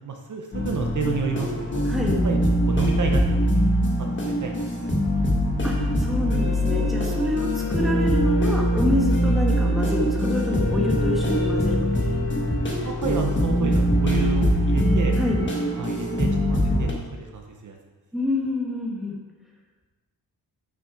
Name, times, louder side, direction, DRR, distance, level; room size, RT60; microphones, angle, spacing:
voice 1, 0.0-1.8 2.2-2.4 2.7-4.8 5.0-5.3 12.8-15.1 15.4-17.8, right 5 dB, 50° right, 2 dB, 0.7 m, -31 dB
sound 1, 0.5-16.9, equal, 30° left, 1.2 m, -22 dB
voice 2, 1.8-2.2 5.6-12.3 15.2-15.4 18.1-19.1, left 1 dB, ahead, -2 dB, 1.1 m, -27 dB
6.5 x 6.1 x 4.8 m, 1.3 s
wide cardioid pair, 170°, 38 cm